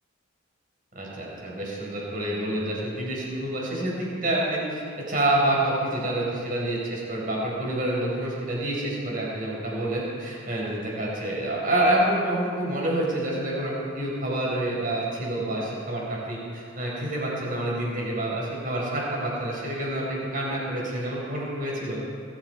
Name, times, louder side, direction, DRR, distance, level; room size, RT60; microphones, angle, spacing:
voice 1, 0.9-22.0, right 1 dB, 40° right, -4 dB, 5.2 m, -28 dB
22.0 x 13.5 x 4.7 m, 2.4 s
head